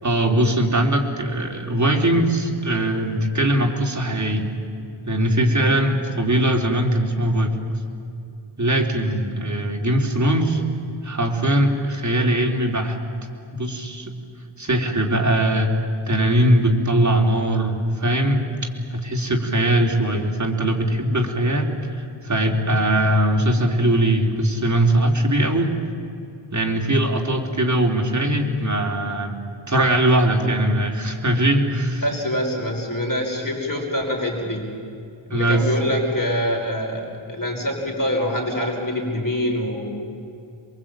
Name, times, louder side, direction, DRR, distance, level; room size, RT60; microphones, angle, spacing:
voice 1, 0.0-4.5 5.1-7.5 8.6-10.6 11.0-13.0 13.5-14.1 14.6-15.7 16.1-18.4 18.9-25.7 26.5-29.3 29.7-32.1 35.3-35.7, right 1 dB, 35° right, 2 dB, 3.4 m, -20 dB
voice 2, 32.0-34.7 35.3-39.9, equal, 40° left, 0 dB, 5.4 m, -25 dB
27.5 x 22.5 x 8.8 m, 2.5 s
wide cardioid pair, 95°, 49 cm